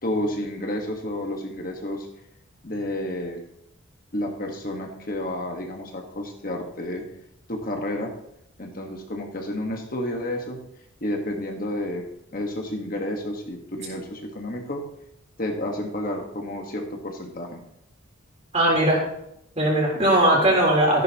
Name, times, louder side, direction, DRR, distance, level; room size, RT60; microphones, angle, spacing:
voice 1, 0.0-2.1 2.6-3.4 4.1-7.1 7.5-8.1 8.6-10.6 11.0-14.8 15.4-17.6, left 1 dB, 40° left, 2 dB, 1.4 m, -30 dB
voice 2, 18.5-19.0 19.6-21.0, right 1 dB, 30° right, -2 dB, 3.7 m, -19 dB
14.0 x 10.5 x 3.0 m, 0.78 s
head